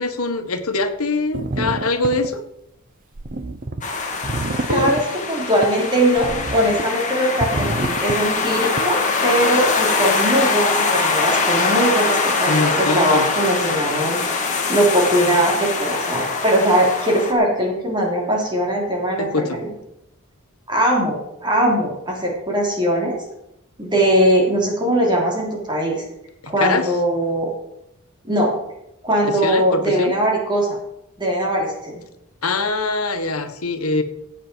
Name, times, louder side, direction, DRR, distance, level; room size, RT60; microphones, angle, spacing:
voice 1, 0.0-2.4 4.7-4.9 12.5-13.3 19.2-19.6 26.4-26.9 29.3-30.1 32.4-34.0, left 3 dB, 80° left, 7 dB, 1.5 m, -23 dB
sound 1, 1.3-2.4 3.1-3.8 4.2-5.1 5.6-5.7 6.2-6.8 7.4-8.2 8.8-8.9, right 2 dB, 40° right, 0.7 m, -27 dB
sound 2, 3.8-17.3, left 4 dB, 35° left, 2.0 m, -22 dB
voice 2, 4.7-14.2 14.7-19.7 20.7-23.2 23.8-26.0 26.5-27.5 28.2-28.5 29.0-30.8 31.2-32.0, right 1 dB, 20° right, -2 dB, 3.4 m, -20 dB
16.0 x 8.7 x 4.6 m, 0.82 s
head